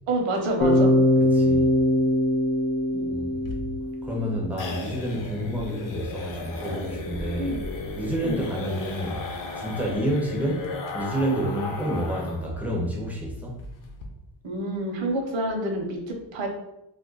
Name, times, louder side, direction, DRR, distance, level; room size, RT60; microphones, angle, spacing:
voice 1, 0.1-0.9 2.9-3.2 7.4-7.6 8.2-8.5 14.4-16.5, right 1 dB, 70° right, 2 dB, 0.8 m, -28 dB
Bass guitar, 0.6-4.7, left 1 dB, 80° left, 0.9 m, -22 dB
voice 2, 1.3-1.8 3.1-3.7 4.0-7.5 8.0-9.2 9.5-13.6, equal, 5° right, -3 dB, 0.4 m, -29 dB
sound 1, 3.4-12.5 12.8-12.9 13.2-13.3 13.6-14.0, left 3 dB, 45° left, 0.5 m, -35 dB
2.5 x 2.4 x 3.7 m, 0.89 s
cardioid pair, 170°, 47 cm